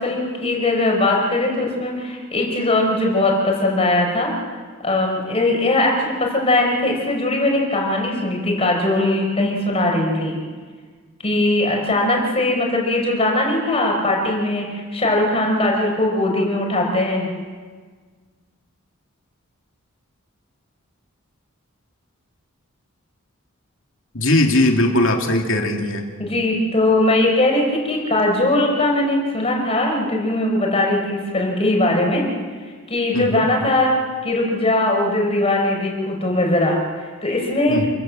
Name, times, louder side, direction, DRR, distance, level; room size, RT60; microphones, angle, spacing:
voice 1, 0.0-4.3 4.8-10.4 11.2-17.3 26.2-32.3 32.9-34.0 34.2-37.9, left 2 dB, 30° left, 0 dB, 5.6 m, -20 dB
voice 2, 24.1-26.0 33.1-33.4 37.7-37.9, left 1 dB, 70° left, 2 dB, 2.8 m, -19 dB
28.5 x 16.0 x 7.7 m, 1.5 s
head